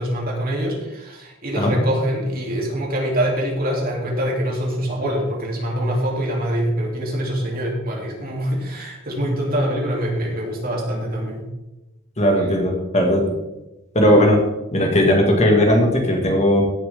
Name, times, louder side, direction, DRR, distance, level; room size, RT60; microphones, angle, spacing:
voice 1, 0.0-11.4, equal, 50° right, -2 dB, 3.2 m, -24 dB
voice 2, 12.2-13.3 14.0-14.4 14.7-16.6, equal, 35° left, 1 dB, 2.1 m, -17 dB
16.0 x 7.6 x 3.7 m, 0.98 s
head